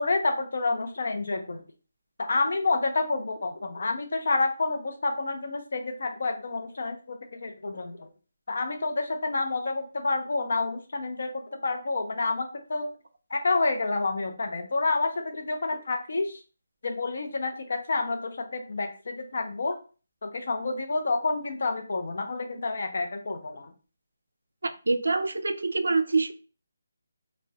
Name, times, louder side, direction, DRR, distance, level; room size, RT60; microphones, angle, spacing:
voice 1, 0.0-1.6 2.2-8.1 8.5-12.9 13.3-16.4 16.8-19.8 20.2-23.7, left 3 dB, 50° left, 0.4 m, -29 dB
voice 2, 24.6-26.3, right 3 dB, 90° right, 0.3 m, -26 dB
2.3 x 2.0 x 2.7 m
hypercardioid pair, 175°, 0 cm